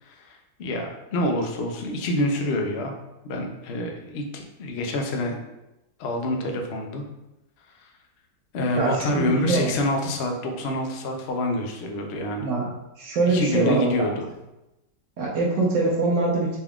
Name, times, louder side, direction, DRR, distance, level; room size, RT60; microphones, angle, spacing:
voice 1, 0.0-2.9 3.2-5.4 6.0-7.0 7.7-7.9 8.5-12.5 13.3-14.3, left 1 dB, 80° left, 2 dB, 0.5 m, -27 dB
voice 2, 8.7-9.7 12.4-12.7 13.0-13.9 15.2-16.6, right 3 dB, 90° right, -4 dB, 1.4 m, -23 dB
4.0 x 2.3 x 3.5 m, 0.94 s
omnidirectional pair, 1.9 m